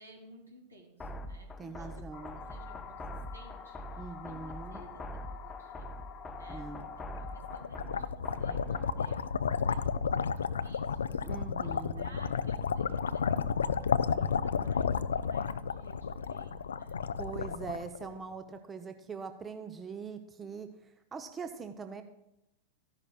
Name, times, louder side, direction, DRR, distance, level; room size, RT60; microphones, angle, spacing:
voice 1, 0.0-3.0 3.3-5.0 5.3-5.9 6.3-6.7 7.0-11.2 11.6-17.0, right 1 dB, 80° right, 2 dB, 2.1 m, -56 dB
sound 1, 1.0-9.0, equal, 15° left, 0.7 m, -44 dB
voice 2, 1.6-2.4 4.0-4.9 6.5-6.9 11.2-12.3 17.2-22.0, right 5 dB, 20° right, 8 dB, 0.6 m, -42 dB
sound 2, 2.1-7.7, left 7 dB, 35° left, 1.1 m, -47 dB
sound 3, 7.2-18.3, left 6 dB, 70° left, 0.3 m, -32 dB
14.0 x 10.5 x 2.3 m, 0.87 s
figure-of-eight pair, 90°, 0 cm